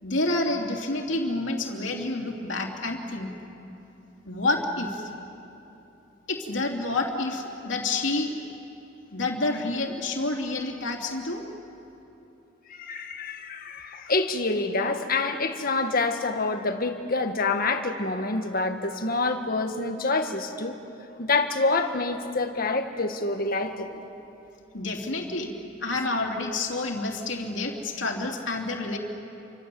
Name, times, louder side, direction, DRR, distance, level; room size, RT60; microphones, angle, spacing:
voice 1, 0.0-3.3 4.2-5.1 6.3-8.3 9.1-11.4 24.7-25.5 25.8-29.0, left 2 dB, 75° left, 2 dB, 3.2 m, -28 dB
voice 2, 12.7-20.8 21.2-24.0, left 3 dB, 50° left, 6 dB, 1.8 m, -27 dB
29.0 x 25.0 x 7.9 m, 3.0 s
head